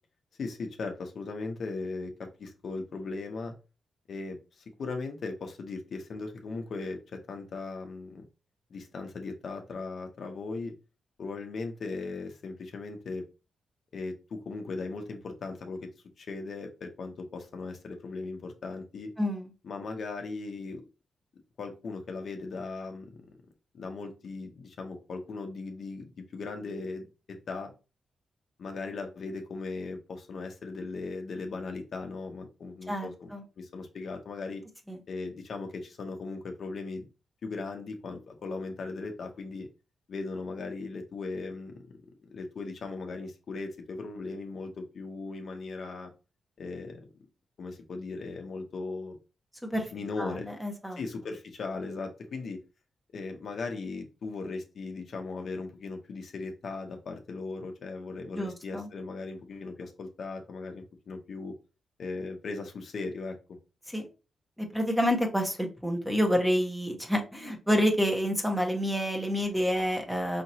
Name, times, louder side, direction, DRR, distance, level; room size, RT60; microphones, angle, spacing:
voice 1, 0.4-2.1 2.4-3.5 4.1-8.2 8.7-10.7 11.2-13.2 13.9-15.9 16.2-19.1 19.6-20.8 21.6-23.2 23.7-27.0 27.5-27.7 28.6-33.3 33.6-34.6 35.1-37.0 37.4-39.7 40.1-41.9 42.3-46.1 46.6-47.0 47.6-49.2 49.9-50.5 51.0-52.6 53.1-61.5 62.0-63.4, left 3 dB, 60° left, 4 dB, 0.8 m, -38 dB
voice 2, 19.2-19.5 32.9-33.4 34.9-35.0 49.6-49.9 50.2-51.0 58.3-58.9 63.9-64.1 64.7-70.4, equal, 5° right, 3 dB, 1.0 m, -28 dB
5.1 x 2.9 x 2.8 m, 0.31 s
cardioid pair, 115°, 0 cm